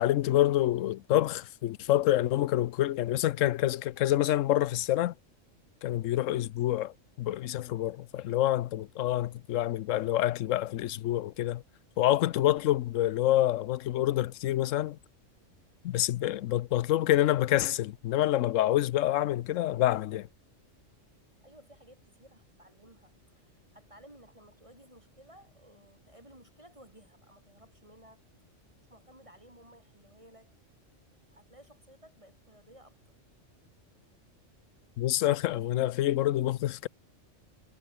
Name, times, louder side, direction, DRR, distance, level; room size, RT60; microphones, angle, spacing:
voice 1, 0.0-5.1 5.8-6.9 7.2-11.6 12.0-15.0 15.8-20.3 35.0-36.9, left 14 dB, 85° left, 1.0 m, -27 dB
voice 2, 21.4-28.2 28.9-30.6 31.3-33.2, right 1 dB, 25° right, 7.1 m, -57 dB
omnidirectional pair, 1.3 m